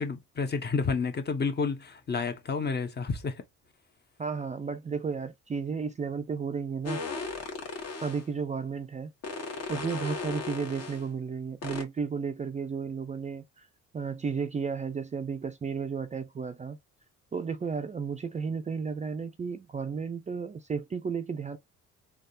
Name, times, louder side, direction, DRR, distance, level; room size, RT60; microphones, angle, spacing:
voice 1, 0.0-3.4, left 4 dB, 35° left, 0.8 m, -30 dB
voice 2, 4.2-7.0 8.0-9.1 9.7-13.7 13.9-16.8 17.3-21.6, right 5 dB, 25° right, 0.4 m, -33 dB
sound 1, 6.8-8.3 9.2-11.0 11.6-11.8, left 3 dB, 55° left, 1.4 m, -36 dB
3.5 x 2.3 x 2.6 m
cardioid pair, 90°, 30 cm